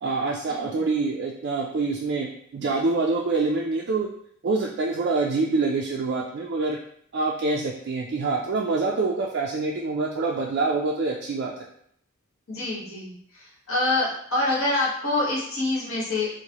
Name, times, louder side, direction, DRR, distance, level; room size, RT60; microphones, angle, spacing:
voice 1, 0.0-4.1 4.4-6.8 7.1-11.7, right 3 dB, 50° right, -1 dB, 0.4 m, -26 dB
voice 2, 12.5-16.3, left 2 dB, 70° left, -5 dB, 1.3 m, -26 dB
4.6 x 2.1 x 2.8 m, 0.67 s
head